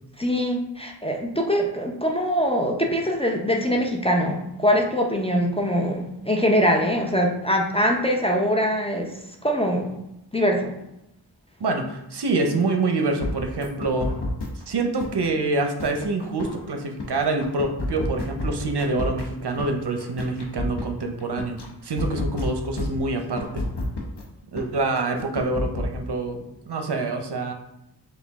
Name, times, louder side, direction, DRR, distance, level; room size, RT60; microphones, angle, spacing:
voice 1, 0.2-9.1 9.4-9.9 10.3-10.7, equal, 15° left, 1 dB, 0.5 m, -23 dB
voice 2, 11.6-14.1 14.7-21.6 21.8-23.6 24.5-27.5, right 3 dB, 70° right, 4 dB, 0.6 m, -26 dB
sound 1, 13.2-14.6 15.0-17.1 17.4-19.7 20.0-21.7 22.0-24.2 24.6-24.7 25.0-26.0, left 2 dB, 75° left, 0.8 m, -29 dB
5.0 x 2.3 x 3.4 m, 0.84 s
wide cardioid pair, 55°, 42 cm